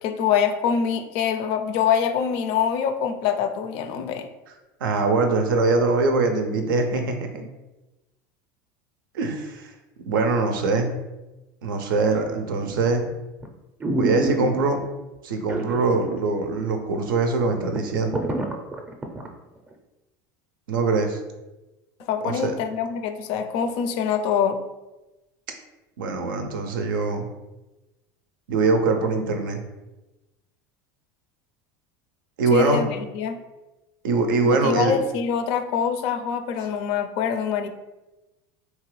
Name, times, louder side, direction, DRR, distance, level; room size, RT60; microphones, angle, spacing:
voice 1, 0.0-4.3 22.0-24.6 32.5-33.4 34.4-37.7, left 7 dB, 65° left, 8 dB, 0.4 m, -24 dB
voice 2, 4.8-7.5 9.1-9.7 10.1-10.9 11.6-13.1 13.9-14.8 15.2-18.2 20.7-21.2 22.2-22.5 26.0-27.3 28.5-29.6 32.4-32.9 34.0-35.0, right 3 dB, 85° right, 5 dB, 0.5 m, -23 dB
sound 1, 12.6-13.0 13.4-13.5 13.8-14.9 15.5-16.2 16.5-16.6 17.1-17.2 17.4-19.3 19.7-19.8, right 2 dB, 15° right, 0.5 m, -27 dB
2.8 x 2.3 x 3.1 m, 1.0 s
supercardioid pair, 95°, 11 cm